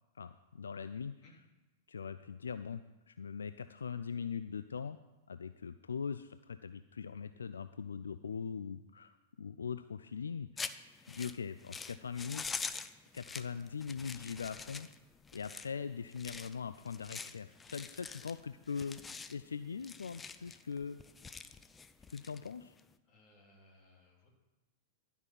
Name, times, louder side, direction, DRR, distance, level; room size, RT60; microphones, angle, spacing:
voice 1, 0.2-1.2 1.9-5.0 5.3-10.5 11.0-12.4 13.1-14.9 15.3-19.0 19.3-21.0 22.1-22.7, left 6 dB, 75° left, 12 dB, 0.3 m, -41 dB
sound 1, 10.6-22.9, left 4 dB, 15° left, 0.5 m, -46 dB
voice 2, 23.0-24.3, left 2 dB, 30° left, 0 dB, 2.9 m, -63 dB
12.0 x 5.5 x 6.0 m, 1.1 s
figure-of-eight pair, 100°, 0 cm